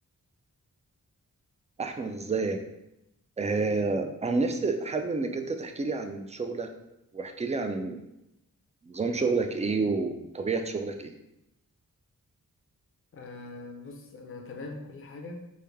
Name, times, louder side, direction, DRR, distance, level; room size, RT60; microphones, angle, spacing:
voice 1, 1.8-2.6 3.4-6.7 7.1-8.0 8.8-11.1, right 3 dB, 20° right, 6 dB, 0.3 m, -29 dB
voice 2, 13.1-15.5, left 3 dB, 35° left, 2 dB, 0.5 m, -42 dB
3.2 x 2.2 x 3.4 m, 0.86 s
wide cardioid pair, 70°, 35 cm